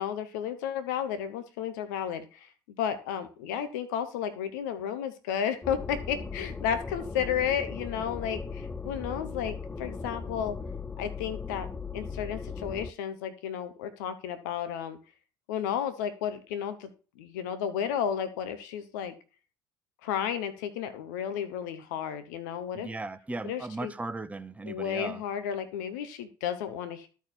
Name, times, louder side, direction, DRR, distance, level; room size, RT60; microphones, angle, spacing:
voice 1, 0.0-2.5 2.8-10.6 11.0-11.7 11.9-15.0 15.5-16.9 17.2-19.1 20.0-22.9 23.4-23.9 24.7-27.1, left 8 dB, 85° left, 1.0 m, -32 dB
sound 1, 5.6-12.9, left 4 dB, 15° left, 0.5 m, -38 dB
voice 2, 22.7-25.2, right 2 dB, 15° right, 0.8 m, -37 dB
12.5 x 4.7 x 4.4 m
supercardioid pair, 75°, 10 cm